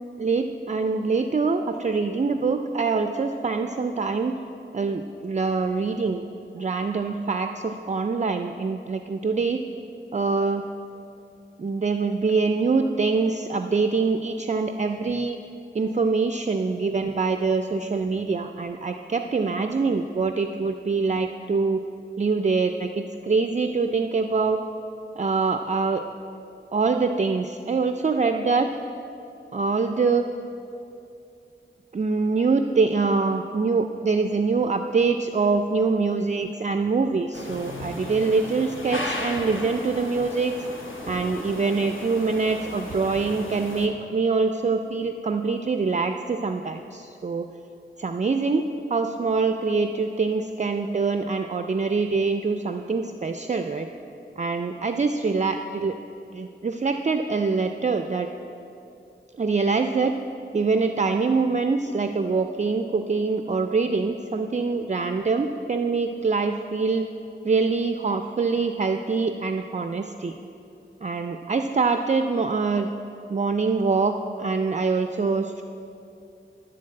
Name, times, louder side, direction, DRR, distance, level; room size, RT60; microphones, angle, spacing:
voice 1, 0.2-4.4 4.7-6.2 6.5-9.6 10.1-10.6 11.6-15.4 15.7-21.8 22.2-24.6 25.2-26.0 26.7-28.7 29.5-30.3 31.9-40.5 41.1-47.5 48.0-48.6 48.9-53.9 54.4-55.9 56.3-58.3 59.4-60.2 60.5-67.1 67.4-70.4 71.0-72.9 73.3-75.6, right 4 dB, 35° right, 6 dB, 0.4 m, -24 dB
sound 1, 37.3-43.9, left 1 dB, 90° left, 1.0 m, -35 dB
11.0 x 3.9 x 7.6 m, 2.7 s
wide cardioid pair, 50°, 20 cm